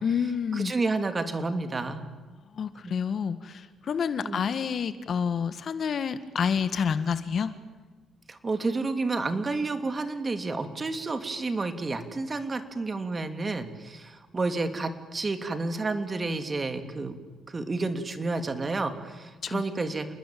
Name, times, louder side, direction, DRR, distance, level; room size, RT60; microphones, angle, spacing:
voice 1, 0.0-0.7 2.6-7.5 19.4-19.6, left 6 dB, 55° left, 12 dB, 1.7 m, -28 dB
voice 2, 0.5-2.1 2.8-3.0 4.2-4.4 8.3-17.2 17.5-20.1, right 3 dB, 30° right, 8 dB, 3.0 m, -30 dB
29.5 x 20.5 x 9.4 m, 1.3 s
cardioid pair, 90°, 0 cm